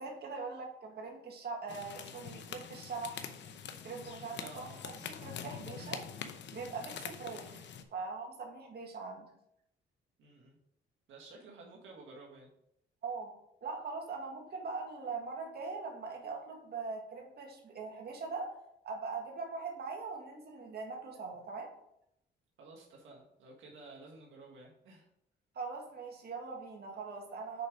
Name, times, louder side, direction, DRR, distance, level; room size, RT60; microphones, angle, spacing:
voice 1, 0.0-3.3 3.8-4.7 5.0-6.0 6.5-7.5 7.9-9.3 13.0-13.3 13.6-18.5 18.8-21.7 25.6-27.7, right 4 dB, 55° right, 1 dB, 1.9 m, -41 dB
sound 1, 1.7-7.8, left 7 dB, 65° left, 0.8 m, -45 dB
voice 2, 4.4-4.8 10.2-10.6 11.1-12.5 22.6-25.1, right 3 dB, 75° right, -2 dB, 1.7 m, -53 dB
6.8 x 4.9 x 5.1 m, 0.77 s
cardioid pair, 90°, 20 cm